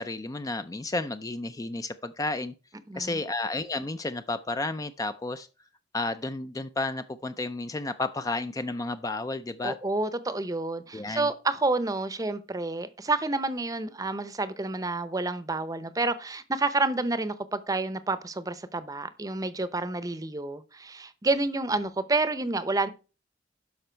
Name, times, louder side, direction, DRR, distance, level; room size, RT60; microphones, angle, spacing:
voice 1, 0.0-2.5 3.0-5.5 5.9-9.8 10.9-11.3, left 2 dB, 20° left, 11 dB, 0.4 m, -32 dB
voice 2, 2.9-3.2 9.6-22.9, right 2 dB, 20° right, 14 dB, 0.7 m, -29 dB
12.0 x 5.4 x 4.4 m, 0.33 s
head